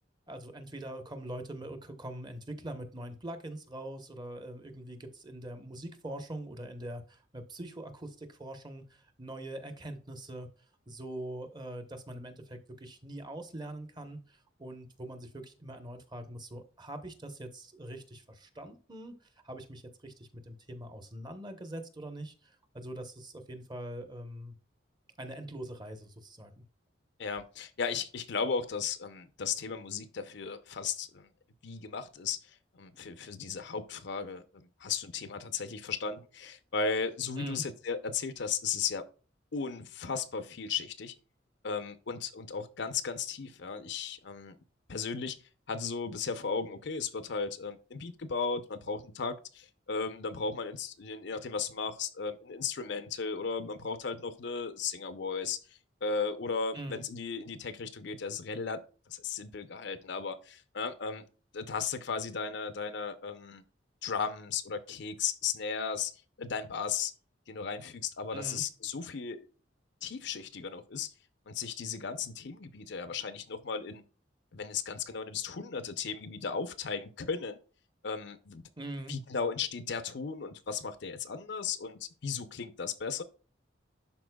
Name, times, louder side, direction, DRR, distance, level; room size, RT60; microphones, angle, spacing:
voice 1, 0.3-10.5 10.9-19.1 19.4-24.5 25.2-26.6 37.4-37.6 56.7-57.0 68.3-68.6 78.8-79.2, right 1 dB, 25° right, 1.0 m, -43 dB
voice 2, 27.2-31.3 31.6-32.4 32.8-39.1 39.5-41.1 41.6-44.6 44.9-45.4 45.7-55.6 56.0-61.3 61.5-63.6 64.0-66.1 66.4-67.1 67.5-69.5 70.0-71.1 71.5-74.0 74.5-77.6 78.0-78.6 79.1-83.2, left 5 dB, 65° left, 0.7 m, -35 dB
11.5 x 4.3 x 2.3 m
head